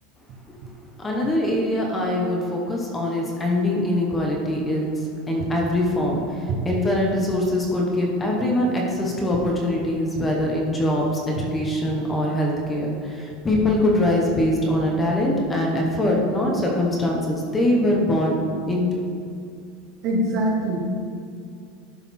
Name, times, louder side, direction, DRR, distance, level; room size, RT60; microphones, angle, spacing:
voice 1, 1.0-18.4 18.7-19.0, left 1 dB, 10° left, -1 dB, 0.8 m, -23 dB
voice 2, 20.0-20.8, right 1 dB, 35° right, 0 dB, 1.0 m, -23 dB
11.5 x 4.1 x 4.1 m, 2.3 s
supercardioid pair, 175°, 0 cm